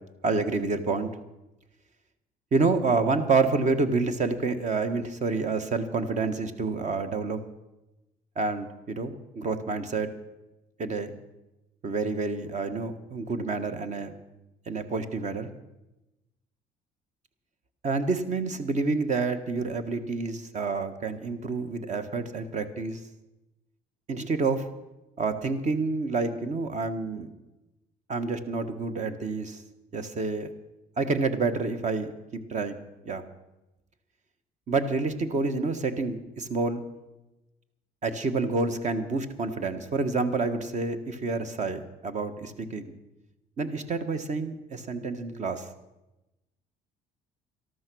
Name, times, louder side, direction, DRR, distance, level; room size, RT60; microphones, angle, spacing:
voice 1, 0.2-1.1 2.5-7.4 8.4-10.1 10.8-11.1 11.8-14.1 14.7-15.5 17.8-23.0 24.1-24.7 25.2-27.3 28.1-29.6 29.9-30.5 31.0-32.8 33.0-33.2 34.7-36.8 38.0-42.8 43.6-45.7, right 3 dB, 45° right, 10 dB, 1.4 m, -28 dB
13.0 x 13.0 x 6.2 m, 0.98 s
cardioid pair, 110°, 17 cm